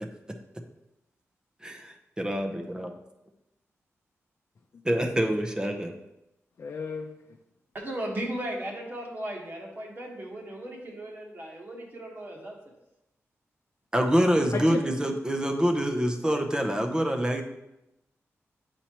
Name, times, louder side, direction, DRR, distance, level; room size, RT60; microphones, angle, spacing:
voice 1, 1.6-2.9 4.8-6.0 13.9-17.4, equal, 15° right, 4 dB, 0.7 m, -26 dB
voice 2, 6.6-7.1 14.5-14.8, left 5 dB, 60° left, 1 dB, 0.6 m, -32 dB
voice 3, 7.7-12.6, right 1 dB, 40° right, -1 dB, 1.5 m, -36 dB
8.6 x 4.3 x 3.0 m, 0.90 s
wide cardioid pair, 95°, 5 cm